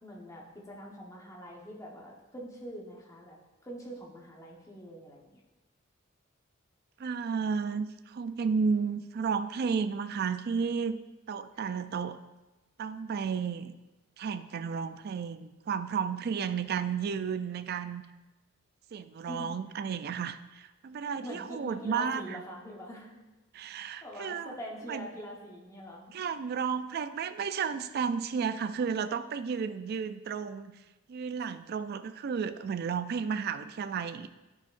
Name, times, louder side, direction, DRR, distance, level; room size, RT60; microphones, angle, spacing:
voice 1, 0.0-5.4 11.5-11.8 19.3-19.5 21.1-23.2 24.0-26.1, equal, 15° left, -2 dB, 1.1 m, -44 dB
voice 2, 7.0-11.0 11.3-12.2 12.8-13.7 14.2-18.0 18.9-22.4 23.5-24.5 24.9-25.1 26.1-30.7 31.1-34.3, right 6 dB, 50° right, 12 dB, 0.3 m, -32 dB
9.9 x 5.7 x 2.5 m, 1.1 s
head